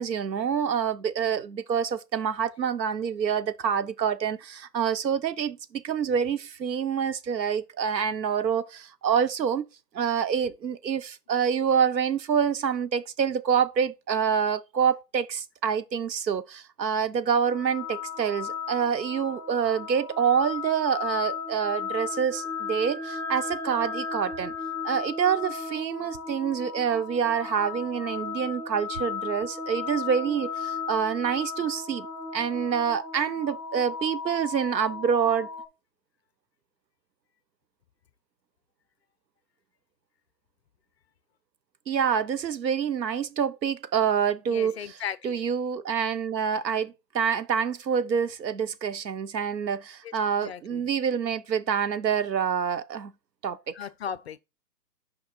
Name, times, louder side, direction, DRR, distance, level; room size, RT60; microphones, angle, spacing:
voice 1, 0.0-9.7 9.9-24.5 24.8-32.1 32.3-35.5 41.9-45.0 45.2-53.1 53.4-53.7, right 7 dB, 90° right, 0.9 m, -27 dB
sound 1, 17.5-35.6, left 5 dB, 5° right, 1.0 m, -35 dB
voice 2, 44.5-45.4 50.0-50.1 50.4-50.9 53.7-54.4, left 8 dB, 40° left, 0.5 m, -36 dB
6.0 x 5.1 x 4.2 m
hypercardioid pair, 135°, 49 cm